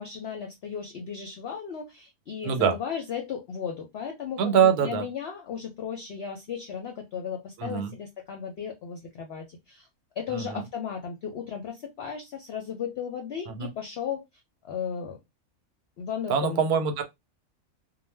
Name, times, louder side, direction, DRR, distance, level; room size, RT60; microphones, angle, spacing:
voice 1, 0.0-9.9 10.2-14.2 14.6-15.2 16.0-16.6, left 7 dB, 65° left, 0.6 m, -35 dB
voice 2, 2.4-2.8 4.4-5.0 7.6-7.9 10.3-10.6 13.5-13.7 16.3-17.0, right 7 dB, 90° right, 1.1 m, -24 dB
2.4 x 2.1 x 3.1 m
omnidirectional pair, 1.6 m